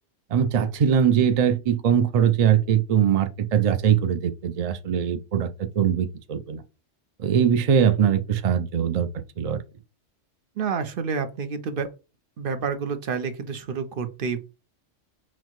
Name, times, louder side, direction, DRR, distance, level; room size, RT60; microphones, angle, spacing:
voice 1, 0.3-6.6 7.2-9.1 9.4-9.6, right 8 dB, 75° right, 0.3 m, -21 dB
voice 2, 10.6-11.9 12.4-14.4, right 5 dB, 55° right, 0.7 m, -29 dB
5.8 x 2.1 x 3.0 m
omnidirectional pair, 1.3 m